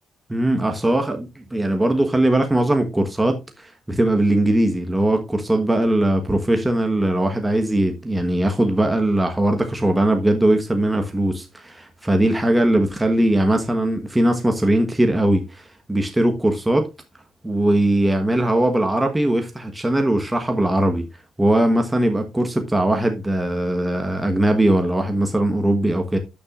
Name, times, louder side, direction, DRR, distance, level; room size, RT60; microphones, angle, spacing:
voice 1, 0.3-16.9 17.4-21.0 21.4-26.2, right 1 dB, 10° right, 1.2 m, -20 dB
12.0 x 7.0 x 2.4 m
cardioid pair, 90°, 0 cm